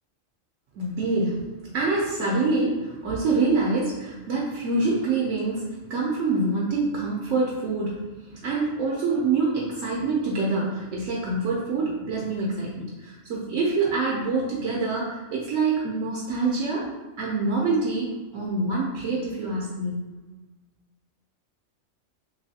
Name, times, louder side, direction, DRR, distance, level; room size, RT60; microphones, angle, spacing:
voice 1, 0.8-5.6 5.9-16.9 17.2-20.0, right 3 dB, 75° right, -4 dB, 1.0 m, -26 dB
3.2 x 2.9 x 2.7 m, 1.2 s
omnidirectional pair, 1.4 m